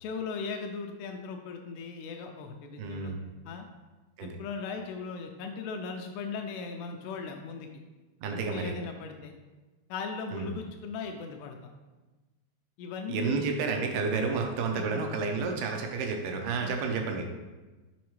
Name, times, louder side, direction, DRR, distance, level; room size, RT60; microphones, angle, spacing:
voice 1, 0.0-3.2 3.4-3.7 4.2-7.7 8.3-9.3 9.9-11.7 12.8-13.5 14.7-15.0 16.6-16.7, left 5 dB, 85° left, 4 dB, 2.5 m, -38 dB
voice 2, 2.8-3.2 4.2-4.4 8.2-8.7 10.3-10.5 13.1-17.3, right 4 dB, 80° right, 3 dB, 2.4 m, -31 dB
7.1 x 4.9 x 3.1 m, 1.2 s
omnidirectional pair, 4.8 m